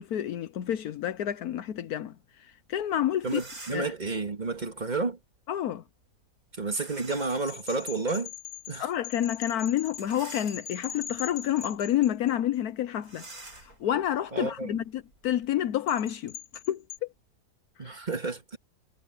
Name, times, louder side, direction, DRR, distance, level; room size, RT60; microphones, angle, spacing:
voice 1, 0.0-2.1 2.4-3.4 3.7-3.9 5.5-5.8 8.8-13.2 13.6-17.1 17.8-17.9, left 11 dB, 80° left, 1.3 m, -29 dB
sound 1, 2.8-2.9 3.2-4.0 6.7-7.6 8.1-8.2 9.8-11.0 11.5-11.8 12.0-12.1 13.0-15.5, right 2 dB, 70° right, 4.9 m, -48 dB
voice 2, 3.2-5.2 6.6-8.3 8.7-8.9 14.3-14.8 17.8-18.6, right 3 dB, 30° right, 2.0 m, -31 dB
sound 2, 7.1-12.5 15.9-17.0, left 9 dB, 65° left, 2.9 m, -42 dB
omnidirectional pair, 1.6 m